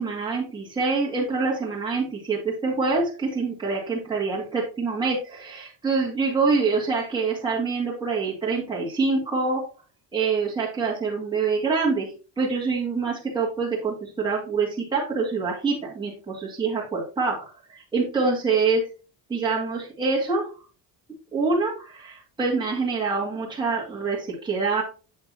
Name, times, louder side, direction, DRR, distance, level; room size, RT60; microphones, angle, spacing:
voice 1, 0.0-9.6 10.1-12.1 12.4-18.8 19.3-20.5 21.3-24.8, right 4 dB, 10° right, -5 dB, 2.2 m, -25 dB
8.0 x 6.5 x 2.8 m, 0.35 s
cardioid pair, 165°, 45 cm